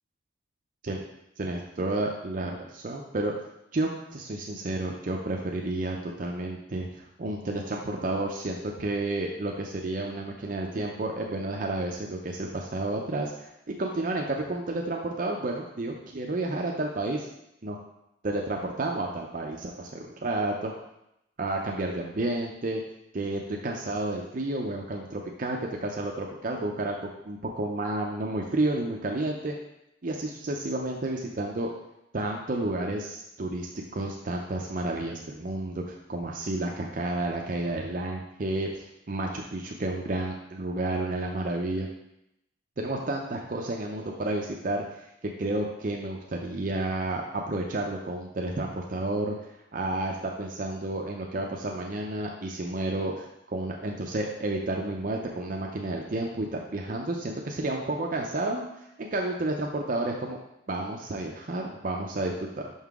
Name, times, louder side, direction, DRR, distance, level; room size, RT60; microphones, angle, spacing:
voice 1, 1.4-3.3 3.7-13.5 13.8-17.3 17.6-17.8 18.2-20.7 21.4-22.8 23.1-29.6 30.0-31.7 32.1-41.9 42.8-44.8 45.4-49.4 49.7-58.6 59.0-60.4 60.7-62.7, right 2 dB, 45° right, 1 dB, 0.5 m, -31 dB
5.7 x 5.6 x 3.6 m, 0.83 s
head